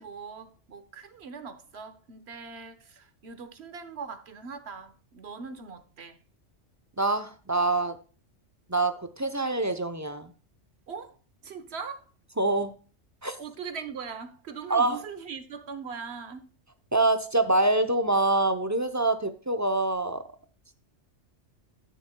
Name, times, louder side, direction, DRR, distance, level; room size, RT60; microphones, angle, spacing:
voice 1, 0.0-6.2 10.9-11.2 11.4-12.1 13.4-16.5, right 5 dB, 60° right, 1.3 m, -40 dB
voice 2, 7.0-8.0 8.7-10.3 12.4-12.7 13.2-13.4 14.7-15.0 16.9-20.2, right 2 dB, 20° right, 0.5 m, -25 dB
13.0 x 7.1 x 2.2 m
omnidirectional pair, 1.2 m